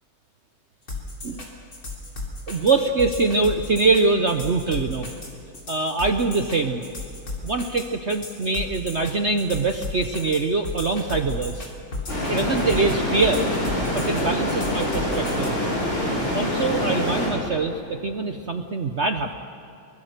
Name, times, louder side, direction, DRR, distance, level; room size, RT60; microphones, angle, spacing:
sound 1, 0.9-15.5, left 2 dB, 45° left, 3.9 m, -34 dB
voice 1, 2.5-5.1 5.7-6.8 7.4-11.7 12.3-13.5 13.9-15.6 16.3-19.3, right 3 dB, 50° right, 6 dB, 0.8 m, -23 dB
sound 2, 12.1-17.3, left 1 dB, 90° left, 7.0 m, -25 dB
24.0 x 22.5 x 6.7 m, 2.7 s
omnidirectional pair, 2.2 m